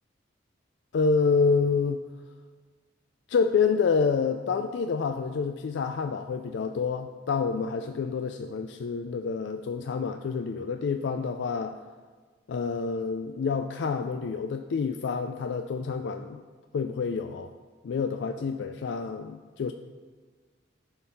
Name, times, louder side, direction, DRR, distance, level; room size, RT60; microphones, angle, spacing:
voice 1, 0.9-2.0 3.3-11.8 12.5-16.4 16.7-17.5 17.8-19.7, left 5 dB, 70° left, 7 dB, 0.3 m, -28 dB
11.0 x 3.9 x 4.1 m, 1.4 s
head